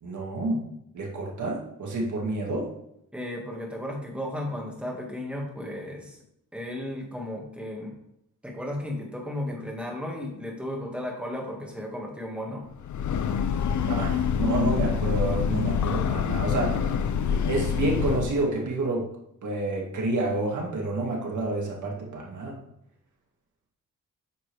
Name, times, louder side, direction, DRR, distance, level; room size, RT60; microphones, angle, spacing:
voice 1, 0.0-0.6 0.9-2.7 13.9-16.8 17.3-19.1 19.4-22.6, right 2 dB, 65° right, -2 dB, 2.2 m, -29 dB
voice 2, 3.1-6.2 6.5-8.0 8.4-12.6, left 1 dB, 5° right, -1 dB, 1.9 m, -34 dB
Breathing / Train, 12.7-18.5, left 7 dB, 65° left, 0.6 m, -26 dB
9.2 x 5.9 x 3.4 m, 0.75 s
cardioid pair, 110°, 32 cm